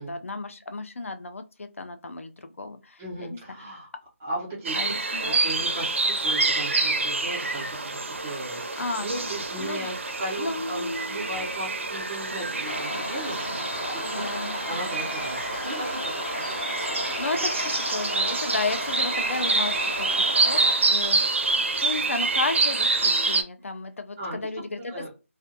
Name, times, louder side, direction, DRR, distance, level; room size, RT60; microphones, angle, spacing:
voice 1, 0.1-3.4 4.7-5.4 8.5-9.2 9.6-9.9 10.4-11.5 14.0-14.6 17.0-20.1 20.4-20.6 20.9-25.1, left 3 dB, 65° left, 8 dB, 0.4 m, -33 dB
voice 2, 3.0-3.9 4.2-13.4 13.9-14.3 14.7-16.1 16.5-16.6 16.9-17.3 24.2-24.4 24.8-25.1, right 1 dB, 5° right, -5 dB, 0.3 m, -36 dB
sound 1, 4.6-23.4, right 3 dB, 60° right, 0.5 m, -27 dB
sound 2, 12.6-20.8, left 1 dB, 45° left, 0.7 m, -34 dB
2.4 x 2.2 x 2.7 m, 0.30 s
figure-of-eight pair, 170°, 8 cm